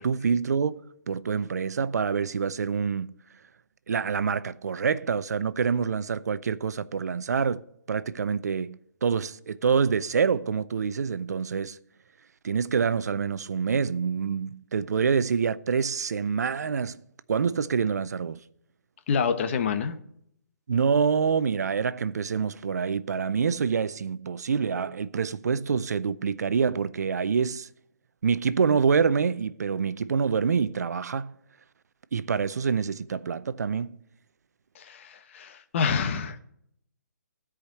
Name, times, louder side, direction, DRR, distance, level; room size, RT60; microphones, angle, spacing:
voice 1, 0.0-3.1 3.9-7.6 7.9-11.8 12.4-17.0 17.3-18.4 20.7-27.7 28.2-31.3 32.1-34.0, right 6 dB, 65° right, 0.5 m, -26 dB
voice 2, 19.1-20.0 34.7-36.4, left 6 dB, 45° left, 1.1 m, -27 dB
13.5 x 5.0 x 7.7 m
figure-of-eight pair, 140°, 10 cm